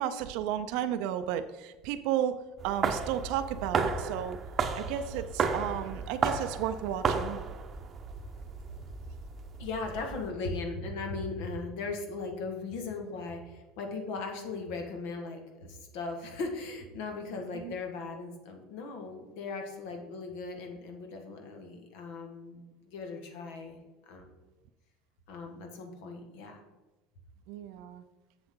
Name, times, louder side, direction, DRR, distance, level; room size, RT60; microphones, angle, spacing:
voice 1, 0.0-4.4 4.7-7.4 17.6-17.7 27.5-28.0, right 10 dB, 70° right, 10 dB, 0.5 m, -33 dB
sound 1, 2.6-10.3, right 5 dB, 35° right, 0.8 m, -33 dB
voice 2, 9.6-23.8 24.1-24.3 25.3-26.6, left 3 dB, 75° left, 3 dB, 1.6 m, -38 dB
7.5 x 7.1 x 3.7 m, 1.1 s
supercardioid pair, 110°, 0 cm